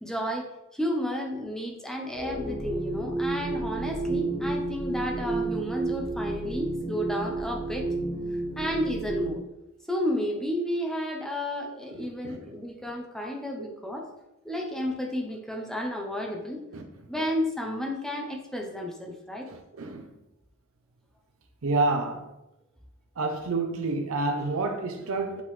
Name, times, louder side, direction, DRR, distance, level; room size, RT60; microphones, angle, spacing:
voice 1, 0.0-7.9 8.6-9.4 9.9-14.1 14.4-16.6 17.1-19.5, equal, 5° left, 0.8 m, -32 dB
sound 1, 2.1-9.3, right 2 dB, 30° right, 2.1 m, -31 dB
voice 2, 19.5-20.0 21.6-22.2 23.2-25.4, right 3 dB, 80° right, 0.6 m, -28 dB
8.2 x 3.7 x 3.2 m
head